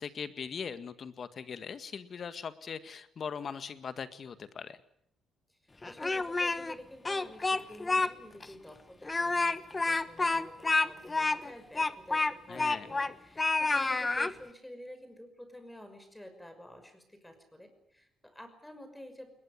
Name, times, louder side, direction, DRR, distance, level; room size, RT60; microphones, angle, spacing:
voice 1, 0.0-4.8 12.5-12.9, left 6 dB, 50° left, 12 dB, 1.8 m, -40 dB
Speech, 5.8-6.7 7.0-8.1 8.4-8.5 9.0-13.1 13.4-14.3, left 3 dB, 25° left, 1.2 m, -29 dB
voice 2, 5.8-19.3, left 1 dB, 5° left, 8 dB, 6.0 m, -49 dB
21.0 x 20.5 x 9.8 m, 0.71 s
cardioid pair, 90°, 0 cm